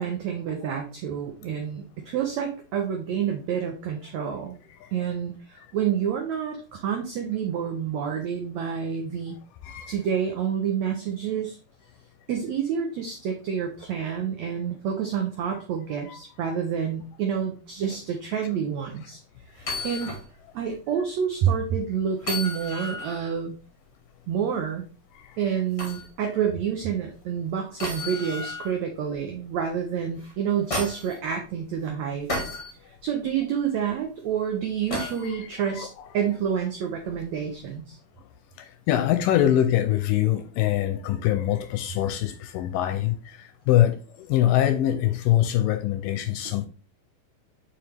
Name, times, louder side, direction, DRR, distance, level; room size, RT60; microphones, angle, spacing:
voice 1, 0.0-4.6 4.9-9.3 9.9-11.6 12.3-19.2 19.5-20.2 20.5-23.6 24.3-24.8 25.4-32.3 33.0-38.0, right 8 dB, 75° right, 1.6 m, -28 dB
voice 2, 9.6-9.9 16.1-16.2 25.2-25.4 35.2-35.5 35.8-35.9 38.6-46.7, left 12 dB, 80° left, 2.1 m, -24 dB
sound 1, 19.6-20.2 20.7-20.8 22.2-23.2 25.8-26.1 27.8-28.7 30.2-31.1 32.3-32.7 34.9-35.3 37.0-37.2, left 2 dB, 30° left, 1.1 m, -32 dB
7.7 x 4.6 x 3.4 m
omnidirectional pair, 4.2 m